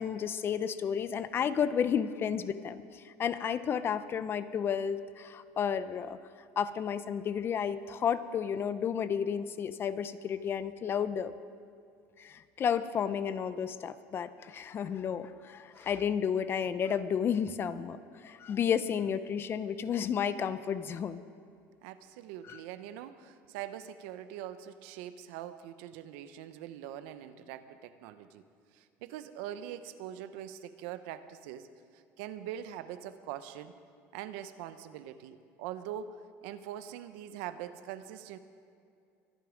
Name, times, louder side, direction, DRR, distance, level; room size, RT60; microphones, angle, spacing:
voice 1, 0.0-6.2 6.6-11.3 12.2-21.2 22.5-22.6, left 7 dB, 35° left, 13 dB, 0.7 m, -32 dB
voice 2, 21.8-28.4 28.7-31.7 31.9-33.7 34.1-38.4, right 11 dB, 80° right, 11 dB, 0.9 m, -43 dB
24.0 x 10.5 x 5.2 m, 2.4 s
cardioid pair, 125°, 7 cm